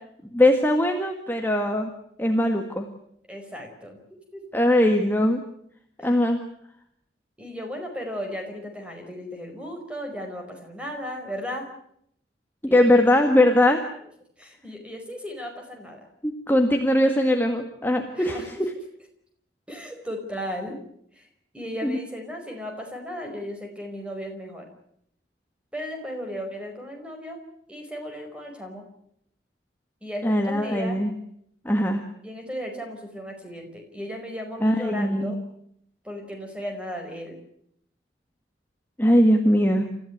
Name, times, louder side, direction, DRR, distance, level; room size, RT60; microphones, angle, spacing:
voice 1, 0.3-1.9 2.2-2.9 4.5-5.4 6.0-6.4 12.7-13.8 16.2-18.4 21.8-22.0 30.2-31.1 31.7-32.0 34.6-35.3 39.0-39.9, left 1 dB, 10° left, 3 dB, 1.8 m, -20 dB
voice 2, 3.3-4.0 4.3-4.4 6.0-6.2 7.4-11.7 12.7-13.3 14.4-16.0 18.1-18.6 19.7-20.8 21.1-21.3 21.5-24.7 25.7-27.4 27.7-28.8 30.0-31.0 32.2-35.4 36.0-37.4, equal, 5° right, 3 dB, 5.0 m, -35 dB
29.0 x 15.0 x 9.4 m, 0.71 s
head